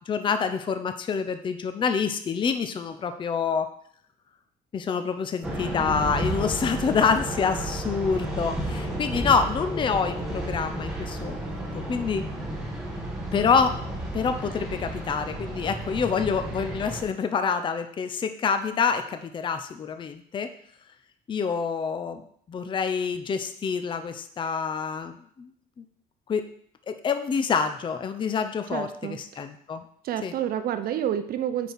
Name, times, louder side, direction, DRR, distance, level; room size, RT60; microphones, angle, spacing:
voice 1, 0.1-3.7 4.7-11.4 11.7-12.2 13.3-13.8 14.1-20.5 21.3-22.2 22.5-25.5 25.8-25.9 26.3-26.4 26.9-29.8 30.2-30.3, left 6 dB, 30° left, 9 dB, 0.5 m, -27 dB
sound 1, 5.4-17.0, right 1 dB, 5° right, 1.4 m, -32 dB
voice 2, 28.7-29.2 30.0-31.7, right 10 dB, 60° right, 10 dB, 0.6 m, -29 dB
4.6 x 4.4 x 5.1 m, 0.64 s
cardioid pair, 110°, 17 cm